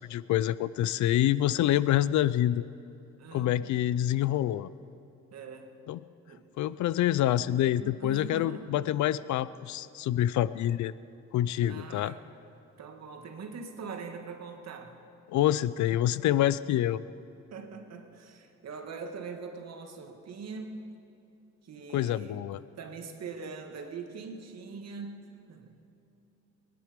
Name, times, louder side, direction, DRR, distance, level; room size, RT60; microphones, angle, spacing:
voice 1, 0.0-2.7 3.3-4.7 5.9-6.0 6.6-10.9 11.3-12.1 15.3-17.0 21.9-22.6, left 12 dB, 70° left, 18 dB, 0.5 m, -26 dB
voice 2, 3.2-3.8 5.3-5.8 6.3-6.4 7.5-8.7 11.7-12.2 12.8-15.0 17.5-21.0 21.6-25.8, right 4 dB, 60° right, 5 dB, 1.8 m, -42 dB
23.0 x 10.5 x 5.1 m, 2.8 s
cardioid pair, 90°, 30 cm